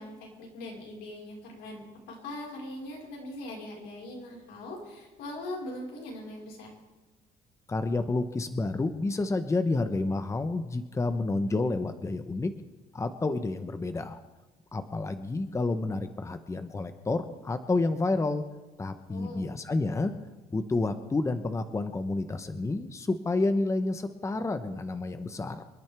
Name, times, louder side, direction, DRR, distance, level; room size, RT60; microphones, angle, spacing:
voice 1, 0.0-6.7 19.1-19.5, left 1 dB, 85° left, -2 dB, 4.8 m, -41 dB
voice 2, 7.7-12.5 12.9-14.2 14.7-18.4 18.8-20.1 20.5-25.6, left 3 dB, 15° left, 9 dB, 0.9 m, -29 dB
28.0 x 10.5 x 3.5 m, 1.2 s
cardioid pair, 110°, 17 cm